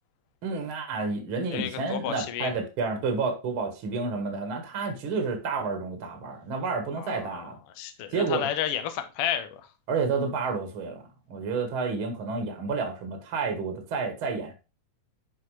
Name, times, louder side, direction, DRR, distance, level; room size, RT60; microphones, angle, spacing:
voice 1, 0.4-7.5 8.1-8.5 9.9-11.0 11.3-14.5, right 4 dB, 50° right, 1.8 m, -30 dB
voice 2, 1.5-2.5 7.0-7.5 7.8-9.6, left 10 dB, 65° left, 1.5 m, -31 dB
11.0 x 4.3 x 3.1 m
omnidirectional pair, 3.6 m